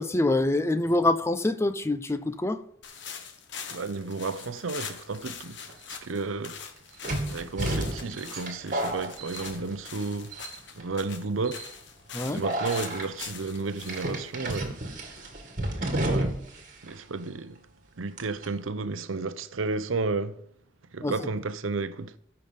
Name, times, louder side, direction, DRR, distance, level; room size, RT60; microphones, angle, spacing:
voice 1, 0.0-2.6 12.1-12.4 21.0-21.1, left 2 dB, 15° left, 0.5 m, -25 dB
sound 1, 2.8-15.6, left 6 dB, 65° left, 1.3 m, -43 dB
voice 2, 3.7-6.6 7.3-10.4 10.8-11.7 12.3-14.8 15.7-16.4 16.8-17.7 18.0-20.4 20.9-22.2, right 3 dB, 85° right, 0.7 m, -32 dB
sound 2, 5.7-5.8 7.0-10.0 10.3-10.8 11.4-11.7 12.4-13.1 13.9-16.6 16.9-17.0 18.2-18.5, right 1 dB, 40° right, 1.9 m, -31 dB
14.5 x 5.8 x 5.3 m
head